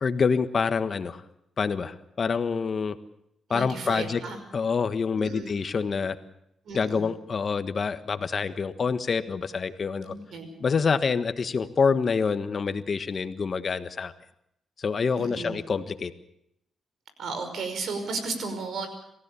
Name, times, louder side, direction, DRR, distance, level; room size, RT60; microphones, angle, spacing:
voice 1, 0.0-1.2 1.6-3.0 3.5-4.2 4.5-6.2 6.7-10.1 10.6-14.1 14.8-16.1, left 5 dB, 50° left, 11 dB, 1.4 m, -26 dB
voice 2, 3.5-4.4 5.2-5.5 6.7-7.1 10.1-10.5 15.1-15.6 17.2-18.9, right 4 dB, 75° right, 8 dB, 5.4 m, -34 dB
27.0 x 15.5 x 7.1 m, 0.79 s
cardioid pair, 65°, 0 cm